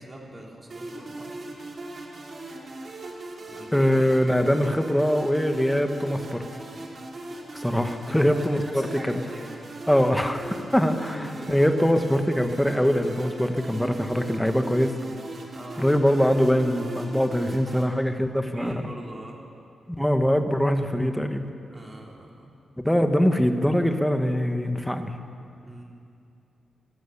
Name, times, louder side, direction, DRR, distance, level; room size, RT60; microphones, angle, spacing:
voice 1, 0.0-1.4 3.5-3.9 8.1-9.5 10.8-11.7 15.5-15.8 18.4-19.4 21.7-22.5 25.6-25.8, right 1 dB, 20° right, -1 dB, 3.6 m, -40 dB
sound 1, 0.7-17.8, right 2 dB, 40° right, 3.2 m, -39 dB
voice 2, 3.7-6.4 7.5-9.2 9.9-14.9 15.8-18.8 20.0-21.5 22.8-25.1, equal, 5° left, 6 dB, 1.3 m, -23 dB
27.0 x 17.5 x 7.2 m, 2.5 s
wide cardioid pair, 165°, 0 cm